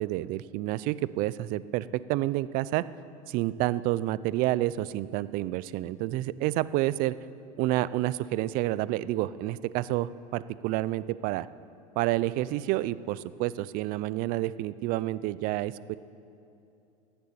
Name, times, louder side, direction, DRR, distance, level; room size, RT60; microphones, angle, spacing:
voice 1, 0.0-2.8 3.3-7.1 7.6-11.5 12.0-16.0, right 16 dB, 50° right, 17 dB, 0.4 m, -29 dB
15.5 x 6.9 x 8.7 m, 2.7 s
supercardioid pair, 120°, 18 cm